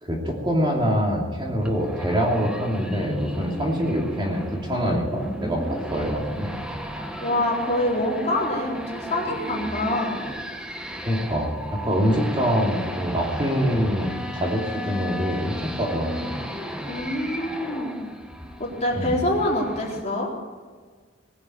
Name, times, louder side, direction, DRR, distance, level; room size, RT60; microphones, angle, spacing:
voice 1, 0.0-6.5 11.0-16.4 18.9-19.2, equal, 25° right, -1 dB, 2.8 m, -25 dB
sound 1, 1.6-20.0, equal, 5° right, 1.2 m, -34 dB
voice 2, 7.2-10.1 16.9-18.0 18.6-20.3, left 1 dB, 35° left, -3 dB, 4.2 m, -25 dB
20.5 x 7.8 x 8.7 m, 1.5 s
head